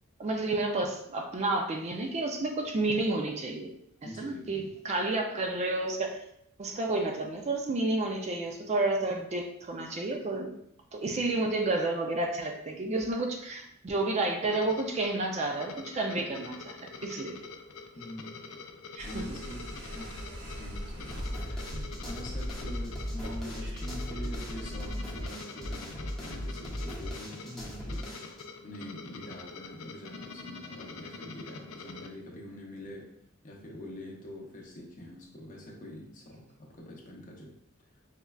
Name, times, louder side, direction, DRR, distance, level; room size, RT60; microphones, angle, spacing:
voice 1, 0.2-3.7 4.2-6.2 6.6-10.5 10.9-17.4 18.9-19.2, right 2 dB, 35° right, 2 dB, 0.4 m, -30 dB
voice 2, 4.0-4.7 11.1-11.3 17.9-18.4 19.0-21.7 22.0-28.4 28.6-33.1 33.4-37.5, left 1 dB, 40° left, -1 dB, 0.7 m, -45 dB
sound 1, 14.5-32.1, left 4 dB, 75° left, 0.4 m, -46 dB
sound 2, 19.0-24.9, equal, 65° right, 0.7 m, -40 dB
sound 3, 21.1-28.4, equal, ahead, 0.7 m, -39 dB
5.0 x 2.2 x 2.3 m, 0.74 s
head